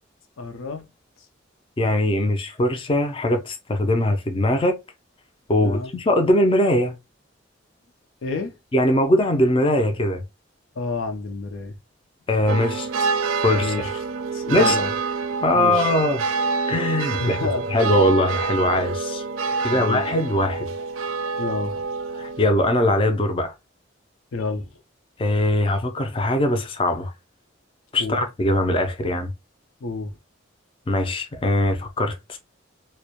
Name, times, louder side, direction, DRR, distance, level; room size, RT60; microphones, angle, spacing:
voice 1, 0.4-0.9 5.6-5.9 8.2-8.5 10.8-11.7 13.6-13.9 14.3-14.9 15.5-15.9 17.2-17.7 19.7-20.1 21.4-21.9 24.3-24.7 28.0-28.2 29.8-30.1, left 3 dB, 90° left, 0.5 m, -29 dB
voice 2, 1.8-4.8 5.5-7.0 8.7-10.2 12.3-13.1 13.4-13.7 14.5-14.8 15.4-16.3 16.7-19.2 19.6-20.7 22.2-23.5 25.2-27.1 27.9-29.3 30.9-32.4, left 1 dB, 25° left, 0.3 m, -21 dB
sound 1, 12.5-22.4, right 4 dB, 90° right, 0.3 m, -27 dB
2.2 x 2.1 x 2.7 m
head